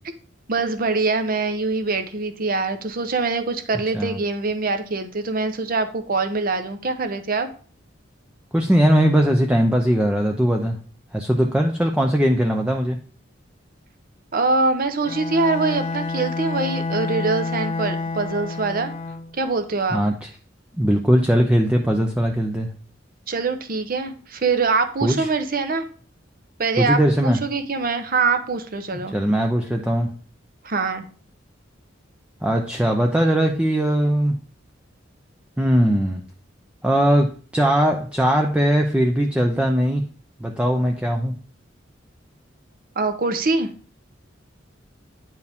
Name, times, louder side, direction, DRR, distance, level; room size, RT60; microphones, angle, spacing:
voice 1, 0.5-7.5 14.3-18.9 19.3-20.0 23.3-25.9 26.6-29.1 30.6-31.0 43.0-43.7, right 3 dB, 50° right, 8 dB, 0.8 m, -23 dB
voice 2, 8.5-10.8 11.1-13.0 19.9-20.3 20.8-22.7 25.0-25.3 26.8-27.4 29.1-30.1 32.4-34.4 35.6-36.2 36.8-40.0 40.4-41.3, equal, 5° right, 1 dB, 0.5 m, -20 dB
Bowed string instrument, 15.1-19.4, left 3 dB, 30° left, 0.7 m, -28 dB
9.4 x 4.7 x 3.5 m, 0.42 s
head